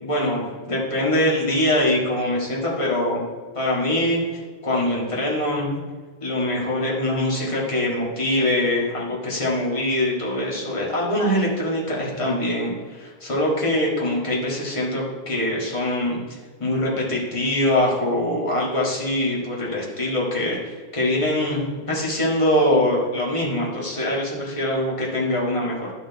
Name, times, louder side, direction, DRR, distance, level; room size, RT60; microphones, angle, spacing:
voice 1, 0.0-3.2 3.6-5.8 6.2-16.2 16.6-25.9, left 1 dB, 30° left, -4 dB, 1.8 m, -23 dB
12.0 x 4.5 x 4.0 m, 1.5 s
omnidirectional pair, 1.0 m